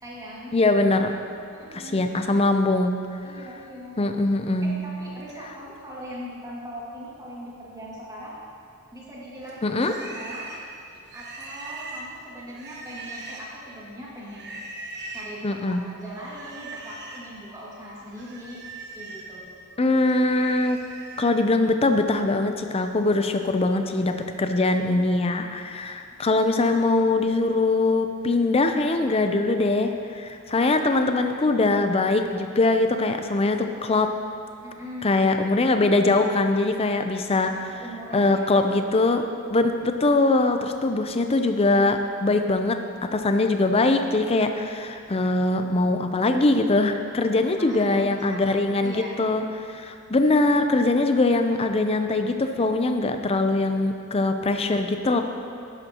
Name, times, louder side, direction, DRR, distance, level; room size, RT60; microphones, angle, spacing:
voice 1, 0.0-0.5 1.5-2.1 3.2-4.0 4.6-8.4 8.9-9.9 10.1-10.5 11.1-14.7 15.1-18.6 18.9-19.5 34.6-35.4 37.3-38.5 47.3-49.1, equal, 15° right, -7 dB, 2.1 m, -40 dB
voice 2, 0.5-1.1 1.7-3.0 4.0-4.8 9.6-9.9 15.4-15.9 19.8-20.8 21.2-34.1 35.0-37.5 38.1-39.2 39.5-55.2, left 2 dB, 25° left, 6 dB, 0.5 m, -22 dB
Livestock farm animals working animals, 9.4-13.7 14.2-15.4 16.1-17.3 17.7-21.3, right 2 dB, 50° right, 1.2 m, -40 dB
11.5 x 11.0 x 2.9 m, 2.3 s
head